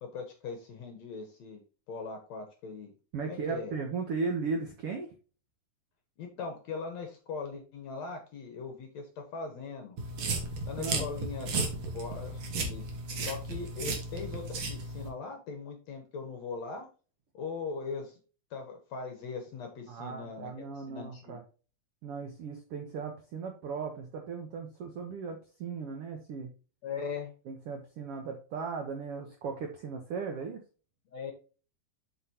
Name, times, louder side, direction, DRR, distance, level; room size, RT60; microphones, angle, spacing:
voice 1, 0.0-1.6 1.9-2.9 3.2-3.7 6.2-10.0 10.6-11.5 11.9-12.8 13.2-16.9 17.3-18.1 18.5-21.4 26.8-27.3 31.1-31.3, left 4 dB, 60° left, 4 dB, 2.1 m, -40 dB
voice 2, 3.1-5.1 10.8-11.1 19.9-21.4 22.0-26.5 27.4-30.6, right 4 dB, 75° right, 4 dB, 1.3 m, -37 dB
sound 1, 10.0-15.1, right 3 dB, 55° right, 2.3 m, -34 dB
7.7 x 6.4 x 2.9 m, 0.35 s
omnidirectional pair, 4.2 m